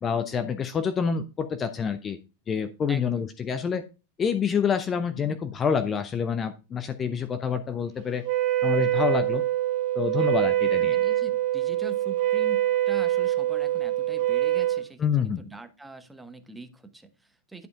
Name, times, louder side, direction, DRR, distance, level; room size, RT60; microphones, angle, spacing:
voice 1, 0.0-2.2 2.5-3.8 4.2-8.2 8.6-9.4 9.9-11.0 15.0-15.4, left 6 dB, 20° left, 9 dB, 0.6 m, -27 dB
voice 2, 2.9-3.2 10.8-17.7, right 2 dB, 5° right, 9 dB, 1.0 m, -43 dB
Wind instrument woodwind instrument, 8.2-14.9, right 13 dB, 40° right, 0.5 m, -24 dB
10.5 x 5.0 x 3.6 m, 0.31 s
figure-of-eight pair, 90°, 0 cm